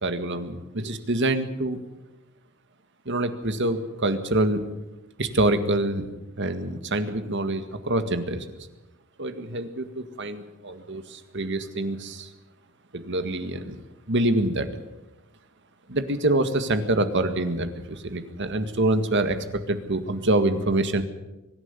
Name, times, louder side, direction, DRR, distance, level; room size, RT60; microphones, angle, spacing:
voice 1, 0.0-1.8 3.1-4.6 5.2-6.0 6.4-8.5 9.2-12.3 12.9-13.8 14.1-14.7 15.9-19.4 19.7-21.0, right 1 dB, 60° right, 9 dB, 1.9 m, -25 dB
24.0 x 11.0 x 9.8 m, 1.0 s
head